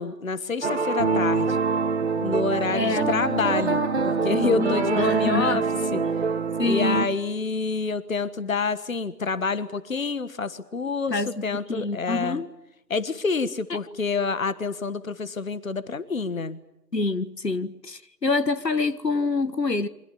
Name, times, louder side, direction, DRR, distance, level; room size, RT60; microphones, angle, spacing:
voice 1, 0.0-1.6 2.2-5.7 5.9-6.0 6.6-12.4 12.9-16.6, left 4 dB, 55° left, 1.5 m, -27 dB
sound 1, 0.6-7.0, right 4 dB, 40° right, 2.1 m, -25 dB
voice 2, 2.7-3.2 4.5-5.6 6.6-7.1 11.1-11.4 11.7-12.5 13.7-13.8 16.9-19.9, left 3 dB, 75° left, 1.6 m, -26 dB
28.5 x 25.0 x 7.0 m
figure-of-eight pair, 150°, 50 cm